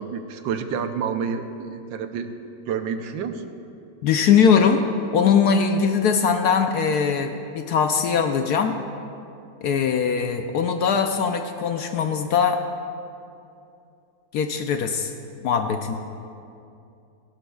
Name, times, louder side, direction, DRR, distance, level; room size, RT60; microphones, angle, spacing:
voice 1, 0.0-2.3 2.7-3.5, right 6 dB, 80° right, 8 dB, 1.4 m, -29 dB
voice 2, 4.0-4.9 5.1-8.8 9.6-12.6 14.3-15.1 15.4-15.9, left 6 dB, 70° left, 6 dB, 1.0 m, -21 dB
17.5 x 16.5 x 2.3 m, 2.6 s
omnidirectional pair, 2.0 m